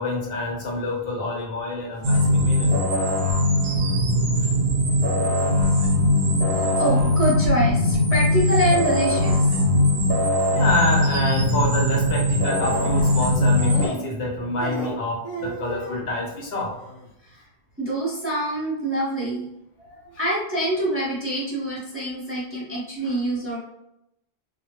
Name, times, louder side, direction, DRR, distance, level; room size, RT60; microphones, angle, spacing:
voice 1, 0.0-2.8 10.5-16.7 19.9-20.0 23.0-23.1, left 2 dB, 70° left, -1 dB, 0.8 m, -27 dB
sound 1, 1.8-2.0 2.4-2.8 3.5-3.9 4.8-5.2 6.5-7.2 7.4-7.5 8.3-9.5 10.7-11.1 11.4-11.7 12.5-13.2 13.5-14.3 14.6-16.1 16.6-17.1, right 1 dB, 45° left, 0.5 m, -37 dB
sound 2, 2.0-13.9, left 1 dB, 70° right, 0.8 m, -20 dB
voice 2, 6.8-9.5 14.8-14.9 17.2-17.4 17.8-19.5 20.2-23.6, right 1 dB, 15° right, -7 dB, 0.6 m, -25 dB
2.1 x 2.1 x 2.9 m, 0.82 s
omnidirectional pair, 1.1 m